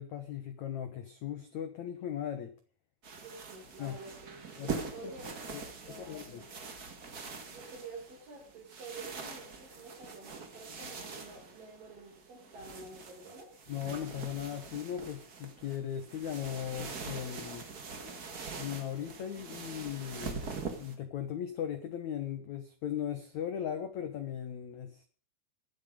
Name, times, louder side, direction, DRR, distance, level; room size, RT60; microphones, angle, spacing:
voice 1, 0.0-2.5 3.8-3.9 4.6-5.1 5.5-5.6 6.0-6.4 13.7-17.7 18.6-20.4 20.7-25.1, left 10 dB, 80° left, 9 dB, 1.6 m, -38 dB
sound 1, 3.0-21.0, right 4 dB, 80° right, 0.8 m, -44 dB
voice 2, 3.2-6.4 7.5-13.5, right 3 dB, 50° right, -3 dB, 5.6 m, -49 dB
21.0 x 7.9 x 5.2 m, 0.41 s
omnidirectional pair, 5.1 m